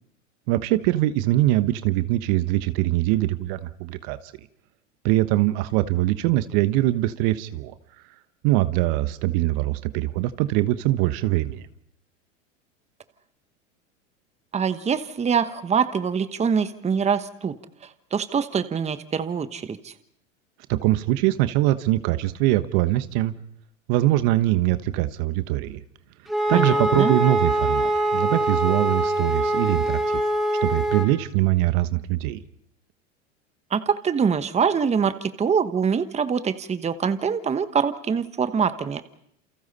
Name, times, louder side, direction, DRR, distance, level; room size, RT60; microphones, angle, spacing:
voice 1, 0.5-4.2 5.0-7.7 8.4-11.7 20.7-23.3 23.9-25.8 26.5-30.0 30.6-32.4, right 16 dB, 50° right, 12 dB, 1.3 m, -22 dB
voice 2, 14.5-17.5 17.8-19.9 26.5-27.2 33.7-39.0, right 6 dB, 15° right, 11 dB, 1.2 m, -24 dB
Wind instrument woodwind instrument, 26.3-31.1, right 1 dB, ahead, 5.0 m, -23 dB
29.0 x 28.5 x 4.2 m, 0.69 s
hypercardioid pair, 100°, 38 cm